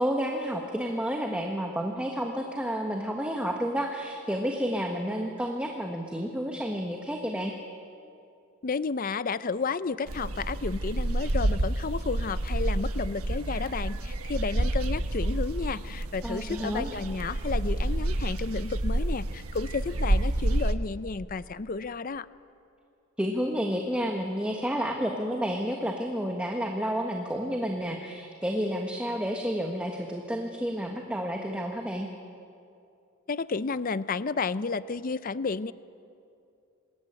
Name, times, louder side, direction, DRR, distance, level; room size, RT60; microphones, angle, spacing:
voice 1, 0.0-7.5 16.2-16.9 23.2-32.1, equal, 5° right, 1 dB, 1.4 m, -30 dB
voice 2, 8.6-22.3 33.3-35.7, left 4 dB, 40° left, 15 dB, 0.5 m, -32 dB
sound 1, 10.1-20.7, right 1 dB, 75° right, 1.3 m, -29 dB
26.5 x 20.5 x 8.9 m, 2.6 s
head